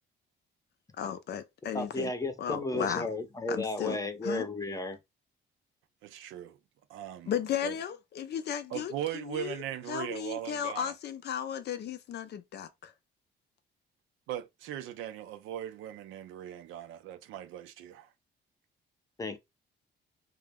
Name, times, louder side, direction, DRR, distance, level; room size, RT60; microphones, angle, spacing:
voice 1, 1.0-2.1 2.4-3.1 3.5-4.0 4.2-4.5 7.3-9.6 9.9-12.9, left 8 dB, 55° left, 0.4 m, -35 dB
voice 2, 1.7-5.0 19.2-19.4, left 2 dB, 15° left, 0.6 m, -33 dB
voice 3, 6.0-6.6 6.9-7.3 7.6-7.7 8.7-10.9 14.3-18.1, right 11 dB, 90° right, 0.4 m, -39 dB
2.2 x 2.1 x 3.4 m
cardioid pair, 90°, 20 cm